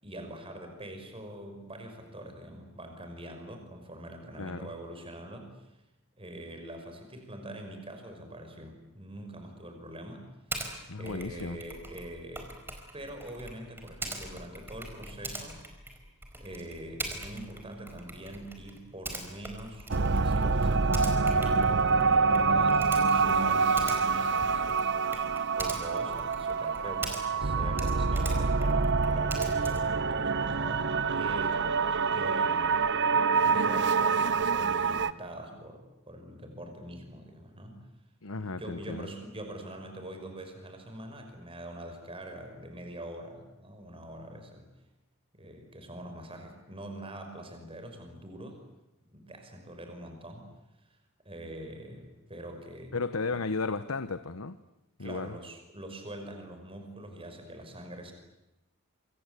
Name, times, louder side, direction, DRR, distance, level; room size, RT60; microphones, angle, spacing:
voice 1, 0.0-5.7 6.2-10.4 11.0-12.6 12.9-15.6 16.4-19.9 20.2-24.9 25.6-29.4 30.0-32.9 33.4-37.8 38.4-44.7 45.3-48.6 49.1-50.5 50.9-51.0 51.2-53.0 53.3-53.4 55.0-58.1, right 1 dB, 25° right, 5 dB, 5.6 m, -44 dB
voice 2, 4.4-4.7 10.9-11.6 38.2-39.1 52.9-54.6 55.0-55.4, left 3 dB, 80° left, 12 dB, 1.0 m, -34 dB
Typing, 10.5-10.7 11.0-27.5 27.7-30.0, right 2 dB, 10° right, 4.7 m, -42 dB
sound 1, 19.9-35.1, right 4 dB, 55° right, 0.9 m, -26 dB
27.0 x 25.5 x 8.3 m, 0.94 s
head